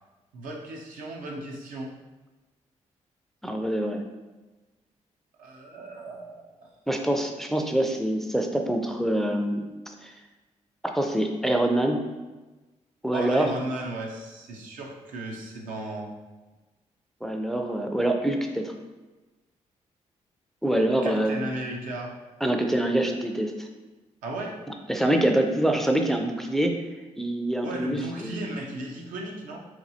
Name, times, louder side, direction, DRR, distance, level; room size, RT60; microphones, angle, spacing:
voice 1, 0.3-1.9 5.4-6.7 13.1-16.1 21.0-22.1 24.2-24.6 27.6-29.6, right 2 dB, 80° right, 0 dB, 0.6 m, -35 dB
voice 2, 3.4-4.1 6.9-10.1 10.9-12.0 13.0-13.5 17.2-18.7 20.6-21.3 22.4-23.7 24.9-26.8 27.1-28.5, right 1 dB, ahead, 3 dB, 0.4 m, -25 dB
4.2 x 2.3 x 2.7 m, 1.2 s
cardioid pair, 65°, 14 cm